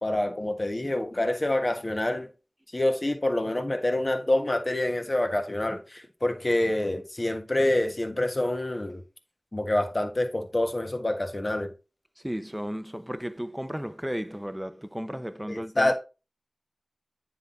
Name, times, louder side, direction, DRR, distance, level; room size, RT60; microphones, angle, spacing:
voice 1, 0.0-2.3 2.7-9.0 9.5-11.7 15.5-15.9, left 1 dB, 40° left, 1.3 m, -27 dB
voice 2, 12.2-15.9, equal, 5° right, 0.7 m, -34 dB
9.4 x 4.0 x 3.8 m
wide cardioid pair, 50°, 0 cm